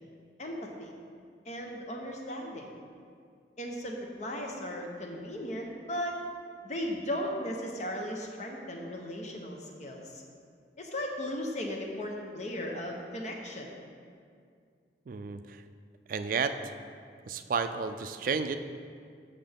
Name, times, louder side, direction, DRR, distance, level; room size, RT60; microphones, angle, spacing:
voice 1, 0.4-0.9 1.4-2.7 3.6-6.2 6.6-10.2 10.8-13.7, left 1 dB, 40° left, 1 dB, 0.8 m, -36 dB
voice 2, 15.1-15.6 16.1-16.7 17.3-18.6, right 5 dB, 50° right, 9 dB, 0.3 m, -32 dB
7.6 x 6.6 x 3.5 m, 2.2 s
head